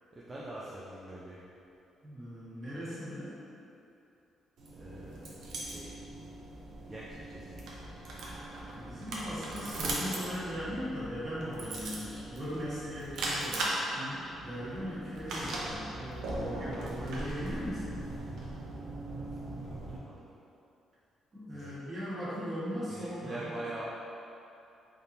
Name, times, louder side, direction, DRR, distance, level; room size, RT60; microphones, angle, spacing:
voice 1, 0.1-1.4 4.8-5.9 6.9-7.6 19.2-20.3 21.5-21.8 22.9-24.0, right 1 dB, 25° right, -7 dB, 0.5 m, -44 dB
voice 2, 2.0-3.4 8.7-18.0 21.3-23.6, equal, 45° right, -9 dB, 1.5 m, -39 dB
sound 1, 4.6-20.0, right 1 dB, 75° right, 0.7 m, -39 dB
3.5 x 2.8 x 4.0 m, 2.8 s
cardioid pair, 90°, 0 cm